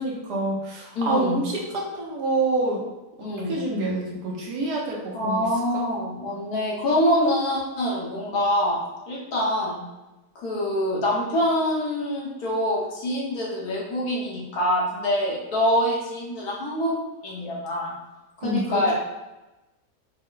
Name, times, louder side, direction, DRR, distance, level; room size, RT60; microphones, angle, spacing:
voice 1, 0.0-2.8 3.2-5.5 5.7-5.8 18.4-18.9, right 2 dB, 85° right, -2 dB, 1.6 m, -27 dB
voice 2, 0.9-1.4 3.2-3.5 5.1-8.8 9.1-9.8 10.3-17.0 17.2-17.9 18.4-18.9, left 1 dB, 65° left, -4 dB, 1.6 m, -25 dB
5.2 x 2.2 x 3.9 m, 1.0 s
omnidirectional pair, 1.7 m